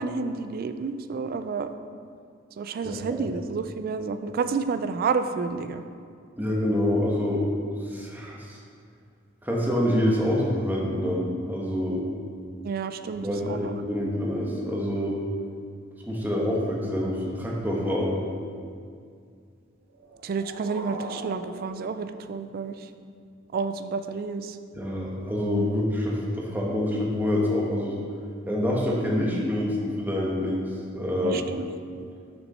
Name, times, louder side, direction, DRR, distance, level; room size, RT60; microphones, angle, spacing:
voice 1, 0.0-1.7 2.6-5.8 12.6-13.7 20.2-22.8 23.5-24.6 31.2-31.6 32.0-32.1, right 5 dB, 45° right, 10 dB, 0.3 m, -30 dB
voice 2, 2.8-3.2 6.4-7.5 7.9-8.6 9.4-12.0 13.1-15.2 16.1-18.1 24.7-28.0 28.5-31.4, left 1 dB, 10° right, -3 dB, 1.0 m, -26 dB
sound 1, 19.9-22.9, right 3 dB, 70° right, 0.7 m, -41 dB
6.4 x 6.1 x 4.2 m, 2.2 s
head